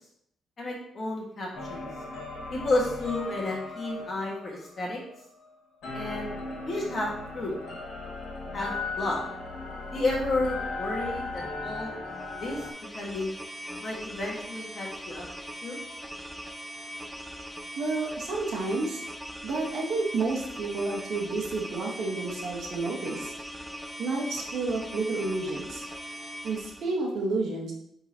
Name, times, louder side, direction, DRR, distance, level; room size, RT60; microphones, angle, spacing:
voice 1, 0.6-1.8 2.5-5.0 5.9-6.4 6.7-7.6 8.5-9.2 9.9-11.9 12.4-12.6 12.9-13.4 13.8-15.3 15.6-15.8, left 2 dB, 35° left, -2 dB, 1.6 m, -31 dB
sound 1, 1.5-5.5 5.8-12.7, left 3 dB, 75° left, 1.8 m, -37 dB
sound 2, 12.1-26.9, equal, 5° right, 0.5 m, -40 dB
voice 2, 17.8-19.0 19.4-23.3 24.0-25.8 26.4-27.7, right 3 dB, 55° right, -1 dB, 1.4 m, -30 dB
9.2 x 4.0 x 2.9 m, 0.72 s
cardioid pair, 170°, 0 cm